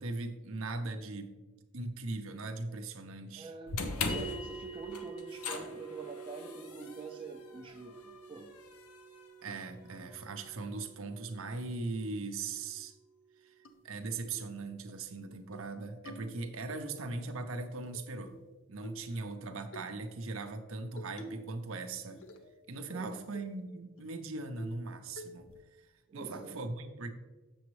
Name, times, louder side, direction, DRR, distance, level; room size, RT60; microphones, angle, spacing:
voice 1, 0.0-1.3 1.7-3.5 9.4-12.9 13.4-18.3 18.7-22.3 22.7-25.9 26.1-27.1, right 3 dB, 65° right, 6 dB, 0.7 m, -39 dB
voice 2, 3.3-8.5 22.9-23.3 26.1-26.6, right 3 dB, 20° right, 1 dB, 0.5 m, -46 dB
sound 1, 3.7-9.9, left 3 dB, 90° left, 0.8 m, -41 dB
sound 2, 4.1-14.6, right 3 dB, 20° left, 0.6 m, -49 dB
sound 3, 13.7-13.8 14.3-14.5 14.9-15.0 15.3-15.7 16.1-16.8 17.8-18.5 18.8-19.1 19.7-19.9 21.0-21.6 21.9-22.6 22.9-23.0 23.3-23.6 24.0-24.1 24.6-24.9 25.2-25.6, equal, 60° left, 0.6 m, -49 dB
7.1 x 6.9 x 3.1 m, 1.2 s
head